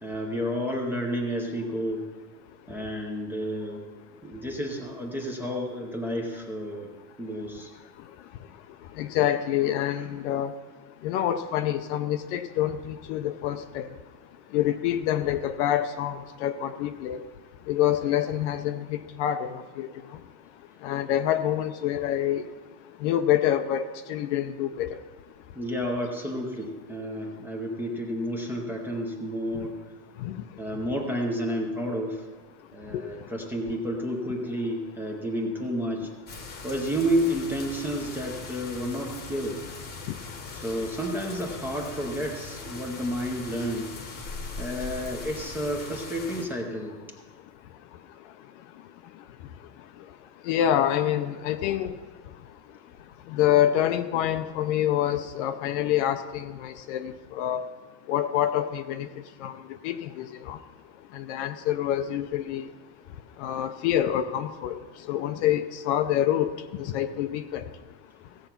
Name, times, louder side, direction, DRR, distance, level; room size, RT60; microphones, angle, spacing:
voice 1, 0.0-2.1 2.7-3.9 4.2-6.9 7.2-7.7 25.5-29.8 30.6-32.2 32.7-36.1 36.6-39.6 40.5-43.9 44.6-47.0, equal, 5° right, 0 dB, 0.6 m, -31 dB
voice 2, 9.0-10.5 11.0-13.9 14.5-17.2 17.7-19.9 20.8-22.4 23.0-25.0 30.2-30.4 40.1-40.2 50.5-51.9 53.3-57.6 58.1-59.1 59.4-59.6 59.8-60.6 61.1-62.6 63.4-64.8 65.1-66.5 66.8-67.6, left 11 dB, 45° left, 10 dB, 0.5 m, -26 dB
sound 1, 36.3-46.4, left 4 dB, 20° left, 1.0 m, -40 dB
16.0 x 7.9 x 5.8 m, 1.4 s
supercardioid pair, 175°, 50 cm